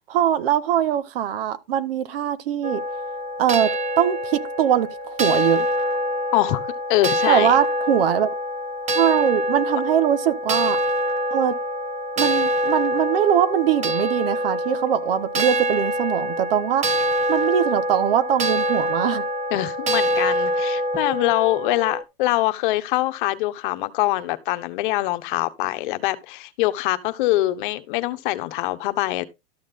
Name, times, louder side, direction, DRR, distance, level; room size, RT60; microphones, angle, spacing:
voice 1, 0.1-2.8 3.4-3.7 4.0-5.7 7.3-8.3 8.9-10.8 11.3-11.6 12.2-16.8 17.3-19.2, right 10 dB, 70° right, 1.5 m, -22 dB
sound 1, 2.6-22.0, equal, 25° right, 1.2 m, -25 dB
voice 2, 6.3-7.6 19.5-29.2, left 17 dB, 55° left, 1.2 m, -24 dB
13.0 x 6.5 x 3.8 m
hypercardioid pair, 130°, 30 cm